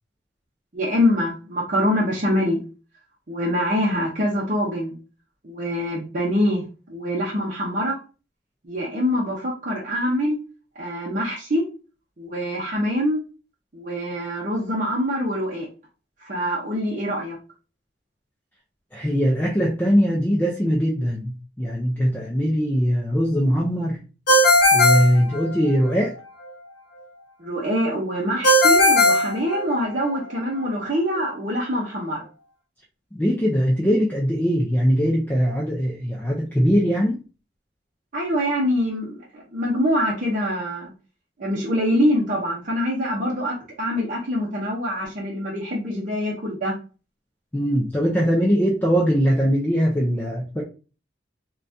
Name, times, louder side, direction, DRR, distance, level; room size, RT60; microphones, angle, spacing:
voice 1, 0.7-2.6 3.3-5.0 5.4-8.0 8.6-10.4 10.8-11.6 12.2-13.2 13.7-15.7 16.2-17.4 27.4-32.2 38.1-40.9 41.4-46.7, equal, 40° right, -5 dB, 0.7 m, -24 dB
voice 2, 18.9-24.0 24.7-26.2 33.1-37.2 47.5-50.6, equal, 10° left, -3 dB, 0.4 m, -21 dB
Ringtone, 24.3-25.9 28.4-30.1, left 1 dB, 55° left, 0.8 m, -17 dB
3.9 x 2.3 x 2.5 m, 0.34 s
head